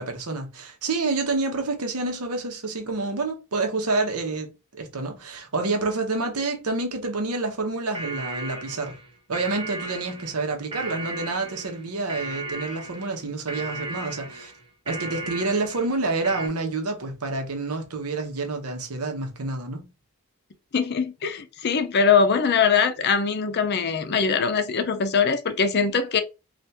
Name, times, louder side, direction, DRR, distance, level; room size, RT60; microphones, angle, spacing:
voice 1, 0.0-9.0 9.3-14.5 14.9-19.8, right 3 dB, 85° right, 0.9 m, -28 dB
sound 1, 7.9-16.5, right 2 dB, 25° right, 0.5 m, -36 dB
voice 2, 20.7-26.2, left 5 dB, 45° left, 0.5 m, -22 dB
3.4 x 2.4 x 2.8 m
head